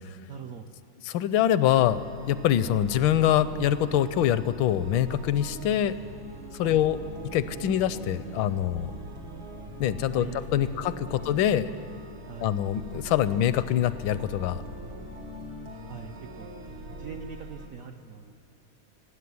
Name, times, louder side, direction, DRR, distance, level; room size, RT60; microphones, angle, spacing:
voice 1, 0.3-0.7 6.6-6.9 10.1-11.2 12.3-12.5 15.9-16.5 16.9-18.3, right 6 dB, 70° right, 4 dB, 0.8 m, -42 dB
voice 2, 1.1-2.0 2.3-5.9 6.5-7.0 7.3-8.9 9.8-10.3 10.5-11.7 12.4-14.6, left 11 dB, 80° left, 15 dB, 1.3 m, -24 dB
sound 1, 1.7-17.7, right 1 dB, 85° right, 2.5 m, -42 dB
16.5 x 8.1 x 9.4 m, 2.7 s
omnidirectional pair, 2.1 m